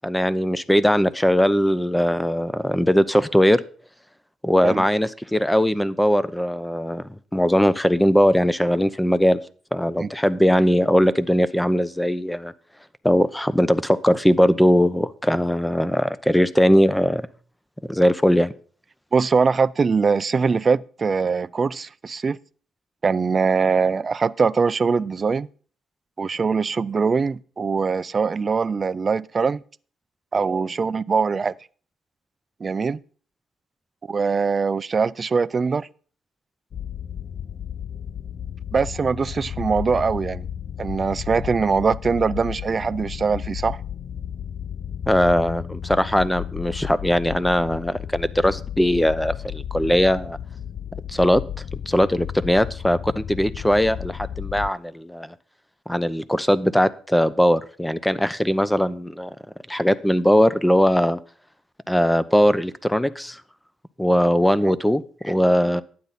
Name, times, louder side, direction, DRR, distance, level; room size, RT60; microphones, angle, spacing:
voice 1, 0.0-3.6 4.4-9.4 9.7-12.5 13.0-17.2 17.9-18.5 45.1-50.4 51.1-55.3 55.9-59.3 59.7-61.2 61.9-63.4 64.0-65.8, equal, 5° left, 0.7 m, -20 dB
voice 2, 19.1-22.4 23.0-25.5 26.2-29.6 30.3-31.5 32.6-33.0 34.1-35.9 38.7-40.5 40.8-43.8 64.6-64.7, right 5 dB, 35° right, 0.4 m, -22 dB
sound 1, 36.7-54.7, left 9 dB, 50° left, 0.4 m, -33 dB
12.0 x 9.5 x 4.1 m
cardioid pair, 90°, 0 cm